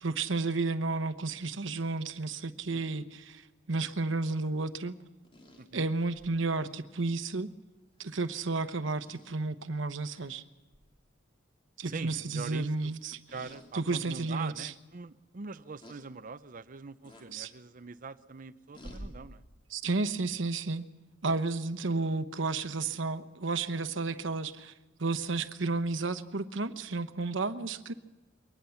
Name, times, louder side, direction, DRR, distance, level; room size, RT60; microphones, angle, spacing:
voice 1, 0.0-3.4 3.7-4.9 5.7-7.5 8.0-10.4 11.8-13.2 13.7-14.7 17.3-17.5 19.7-20.8 21.2-24.7 25.0-27.9, right 3 dB, 65° right, 11 dB, 1.0 m, -32 dB
voice 2, 2.7-3.1 5.6-5.9 11.8-12.9 13.3-19.4, right 4 dB, 45° right, 12 dB, 0.6 m, -43 dB
sound 1, 5.2-6.4 8.0-8.2 9.0-9.3 10.1-10.3 10.7-10.9 13.3-13.7 14.3-14.4 15.8-16.0 17.0-17.3 18.7-19.1, equal, 25° left, 3.4 m, -49 dB
23.0 x 19.5 x 7.1 m, 1.1 s
head